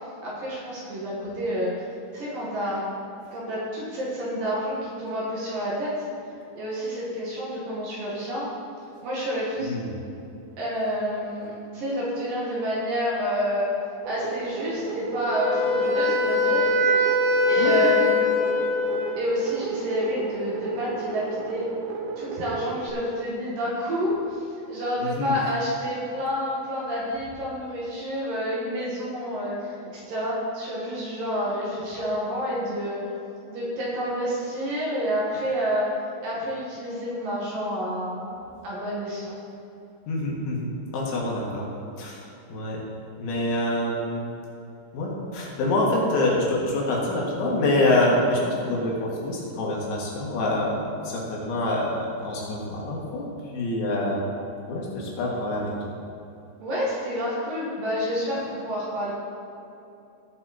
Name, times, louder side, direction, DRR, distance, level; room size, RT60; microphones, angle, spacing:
voice 1, 0.2-1.8 2.1-2.8 3.3-6.0 6.6-8.5 9.0-9.8 10.6-13.7 14.0-16.7 17.5-18.6 19.1-21.7 22.2-33.0 33.5-35.9 36.2-39.4 56.6-59.1, equal, 55° right, -6 dB, 3.1 m, -29 dB
voice 2, 9.6-9.9 17.6-17.9 25.0-25.4 40.1-41.7 42.0-42.8 43.2-44.3 44.9-54.3 54.7-55.7, left 1 dB, 75° left, -4 dB, 4.0 m, -26 dB
sound 1, 14.0-22.9, right 4 dB, 90° right, 3.1 m, -33 dB
Wind instrument woodwind instrument, 15.2-19.3, left 2 dB, 30° right, 1.8 m, -22 dB
16.5 x 6.5 x 4.2 m, 2.7 s
omnidirectional pair, 5.4 m